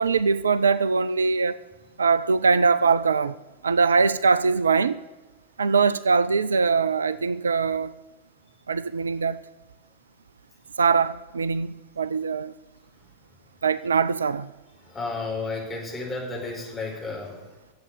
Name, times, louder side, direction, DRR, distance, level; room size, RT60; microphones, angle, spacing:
voice 1, 0.0-1.6 2.0-3.3 3.6-5.0 5.6-7.9 8.7-9.4 10.8-12.5 13.6-14.5, right 5 dB, 70° right, 0.4 m, -22 dB
voice 2, 14.8-17.4, left 3 dB, 15° left, 4.6 m, -32 dB
11.5 x 7.7 x 9.4 m
figure-of-eight pair, 90°, 0 cm